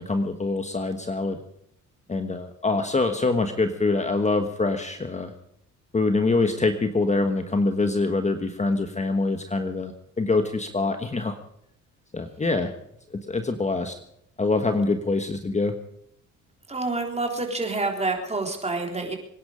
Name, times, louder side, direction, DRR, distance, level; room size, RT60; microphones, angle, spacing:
voice 1, 0.0-1.4 2.1-5.3 5.9-11.4 12.1-12.7 13.1-13.9 14.4-15.7, left 3 dB, 25° left, 7 dB, 1.4 m, -25 dB
voice 2, 16.7-19.2, right 3 dB, 20° right, 2 dB, 3.7 m, -27 dB
25.0 x 10.5 x 5.1 m, 0.73 s
cardioid pair, 90°, 30 cm